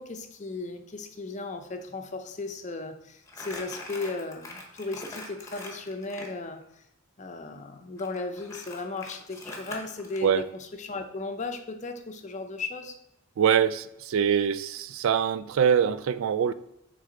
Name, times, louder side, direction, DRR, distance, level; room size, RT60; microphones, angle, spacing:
voice 1, 0.0-6.6 7.2-13.0, left 3 dB, 35° left, 6 dB, 0.5 m, -36 dB
Crumpling crinkling, 3.3-6.3 8.0-10.2, left 2 dB, 15° left, 0.9 m, -42 dB
voice 2, 13.4-16.5, right 8 dB, 85° right, 14 dB, 0.3 m, -24 dB
6.4 x 4.0 x 3.8 m, 0.82 s
head